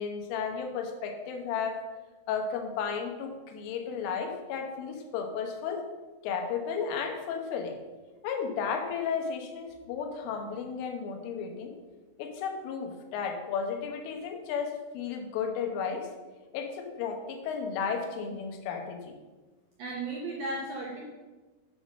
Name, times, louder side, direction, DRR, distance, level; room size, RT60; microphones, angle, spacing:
voice 1, 0.0-1.8 2.3-5.8 6.2-7.8 8.2-11.7 12.2-16.1 16.5-19.2, left 6 dB, 80° left, 4 dB, 3.6 m, -33 dB
voice 2, 19.8-21.0, right 2 dB, 75° right, -3 dB, 2.1 m, -35 dB
8.8 x 5.7 x 6.3 m, 1.3 s
omnidirectional pair, 5.8 m